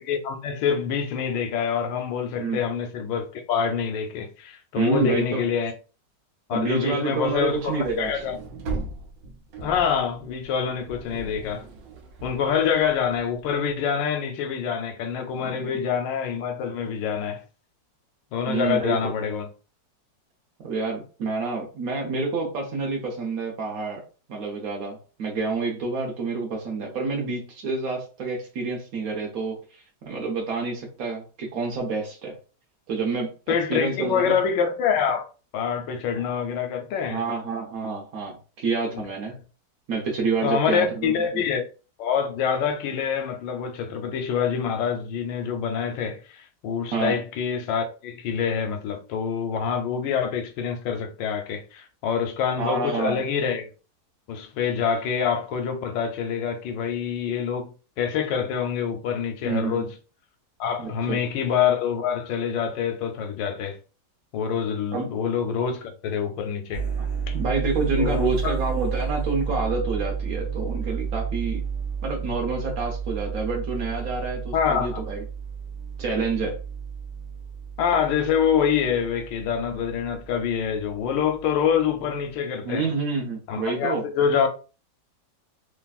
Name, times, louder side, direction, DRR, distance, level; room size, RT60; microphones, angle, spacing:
voice 1, 0.0-5.7 6.5-8.4 9.6-11.6 12.2-17.4 18.3-19.5 33.5-35.3 35.5-37.2 38.9-39.0 40.4-41.6 42.0-53.7 54.3-59.9 60.6-63.8 64.3-66.8 67.3-67.4 68.0-68.6 74.5-75.0 77.8-82.9 83.5-84.5, left 7 dB, 90° left, 1.3 m, -26 dB
voice 2, 4.7-5.5 6.5-8.2 15.4-15.8 18.4-19.1 20.6-24.0 24.3-29.6 30.0-32.3 32.9-34.3 36.2-36.3 37.1-39.4 39.9-41.4 46.9-47.2 52.6-53.2 59.4-59.8 60.8-61.2 64.9-65.2 67.0-67.1 67.3-71.6 72.0-75.2 76.0-76.6 82.6-84.1, right 4 dB, 65° right, 1.0 m, -28 dB
sound 1, 7.2-13.6, right 3 dB, 85° right, 1.4 m, -38 dB
sound 2, 66.7-81.9, right 6 dB, 55° left, 0.3 m, -32 dB
3.2 x 2.5 x 2.3 m
omnidirectional pair, 1.9 m